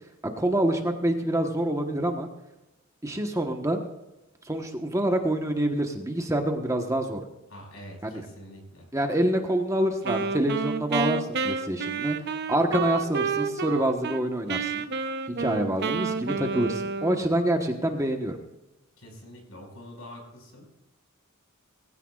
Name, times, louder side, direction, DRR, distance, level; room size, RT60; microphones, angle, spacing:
voice 1, 0.4-2.3 3.0-3.8 4.4-7.2 8.0-8.2 8.9-12.2 12.5-14.8 15.3-18.4, right 1 dB, 15° right, 4 dB, 1.2 m, -26 dB
voice 2, 7.5-8.9 19.0-20.7, equal, 75° left, 1 dB, 5.5 m, -45 dB
Wind instrument woodwind instrument, 10.0-14.2 14.5-17.4, right 4 dB, 50° right, 0.8 m, -30 dB
20.0 x 16.0 x 2.4 m, 0.98 s
head